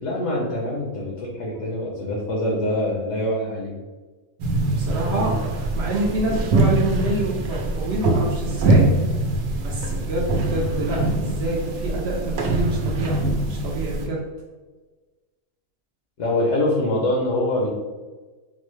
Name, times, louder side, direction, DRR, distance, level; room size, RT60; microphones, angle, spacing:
voice 1, 0.0-3.7 5.1-5.3 16.2-17.7, left 1 dB, 65° left, -2 dB, 0.9 m, -24 dB
sound 1, 4.4-14.1, right 2 dB, 85° right, 1.0 m, -23 dB
voice 2, 4.7-8.9 9.6-13.2 13.5-14.2, right 2 dB, 60° right, -2 dB, 0.7 m, -27 dB
3.9 x 2.2 x 3.1 m, 1.3 s
omnidirectional pair, 1.5 m